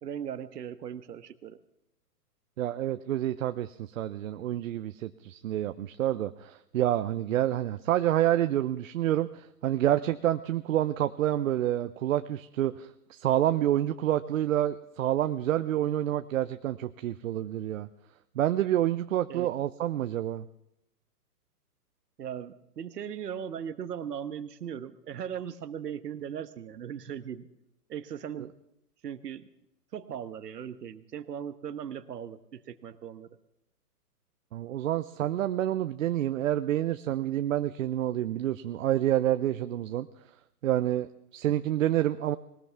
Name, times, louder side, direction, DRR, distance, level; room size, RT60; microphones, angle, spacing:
voice 1, 0.0-1.6 19.3-19.5 22.2-27.5 27.9-28.5 29.0-29.5 29.9-33.3, right 8 dB, 80° right, 12 dB, 1.3 m, -38 dB
voice 2, 2.6-17.9 18.4-20.4 34.5-40.1 40.6-42.4, right 12 dB, 55° right, 10 dB, 0.8 m, -28 dB
20.0 x 19.5 x 3.5 m, 0.84 s
hypercardioid pair, 140°, 48 cm